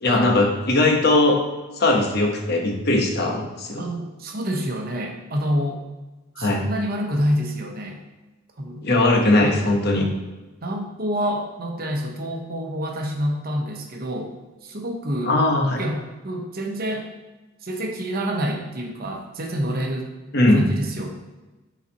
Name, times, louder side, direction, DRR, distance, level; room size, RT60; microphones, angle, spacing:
voice 1, 0.0-1.4 1.8-3.9 6.4-6.6 8.8-10.1 15.2-15.8 20.3-20.7, left 2 dB, 55° left, 1 dB, 1.0 m, -19 dB
voice 2, 3.8-5.8 6.4-8.0 8.6-8.9 9.4-9.6 9.9-10.1 10.6-14.3 14.6-15.4 15.8-17.1 17.6-20.1 20.5-21.1, equal, 50° right, 2 dB, 0.9 m, -27 dB
7.0 x 4.1 x 4.1 m, 1.2 s
head